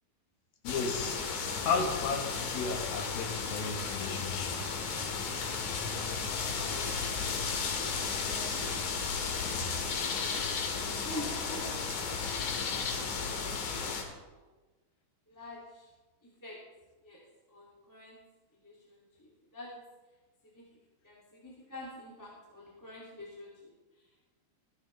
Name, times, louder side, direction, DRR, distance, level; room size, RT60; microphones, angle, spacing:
voice 1, 0.6-1.2 1.7-4.8 9.5-9.7, left 5 dB, 80° left, 3 dB, 3.3 m, -34 dB
sound 1, 0.7-14.0, left 5 dB, 60° left, 2.7 m, -34 dB
voice 2, 5.9-7.4 11.0-11.7 14.3-14.4 15.3-15.9 16.4-16.6 17.0-17.2 17.5-18.2 18.6-19.8 20.5-20.7 21.0-23.7, left 1 dB, 5° left, -6 dB, 1.9 m, -47 dB
15.0 x 14.5 x 3.4 m, 1.2 s
omnidirectional pair, 4.2 m